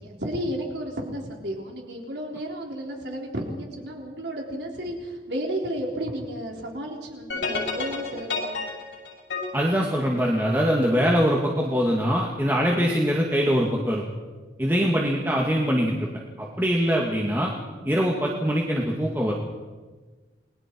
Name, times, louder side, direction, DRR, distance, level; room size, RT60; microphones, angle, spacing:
voice 1, 0.0-8.6 14.8-14.9, equal, 70° right, 0 dB, 3.8 m, -33 dB
sound 1, 7.3-10.7, left 3 dB, 85° left, 8.0 m, -31 dB
voice 2, 9.5-14.0 14.6-16.1 16.4-17.5 17.8-19.3, equal, 10° right, -2 dB, 2.1 m, -23 dB
29.0 x 22.0 x 4.6 m, 1.3 s
head